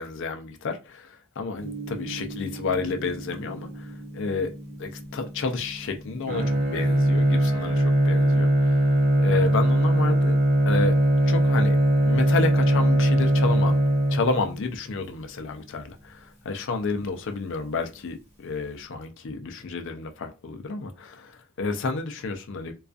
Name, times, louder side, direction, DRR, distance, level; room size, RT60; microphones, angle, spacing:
voice 1, 0.0-4.5 4.8-10.4 10.7-11.0 11.3-11.8 12.0-13.8 14.1-22.7, left 4 dB, 60° left, 0.4 m, -30 dB
Gong, 1.6-18.8, right 1 dB, 10° right, 0.9 m, -43 dB
Bowed string instrument, 6.3-14.6, right 1 dB, 40° right, 0.6 m, -20 dB
2.4 x 2.3 x 2.4 m
head